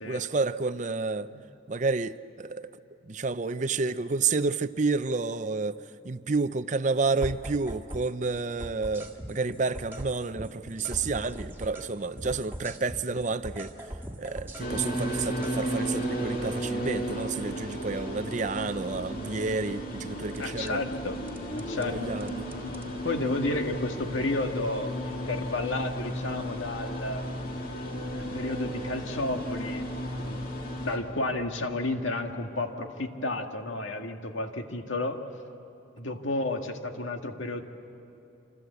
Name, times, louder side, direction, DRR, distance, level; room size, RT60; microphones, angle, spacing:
voice 1, 0.0-1.3 1.7-2.7 3.1-5.8 6.0-13.8 14.2-20.8 21.7-22.5, right 4 dB, 40° right, 0.5 m, -30 dB
sound 1, 7.2-8.1 8.4-11.9 12.2-15.6 20.3-20.7 21.3-21.9 22.2-22.9, equal, 10° right, 1.8 m, -40 dB
sound 2, 14.6-31.0, equal, 45° left, 2.9 m, -34 dB
voice 2, 20.4-21.2 21.5-22.1 23.0-27.3 28.2-29.8 30.1-30.4 30.8-35.2 36.0-37.6, left 2 dB, 80° left, 1.9 m, -32 dB
27.5 x 26.0 x 8.2 m
head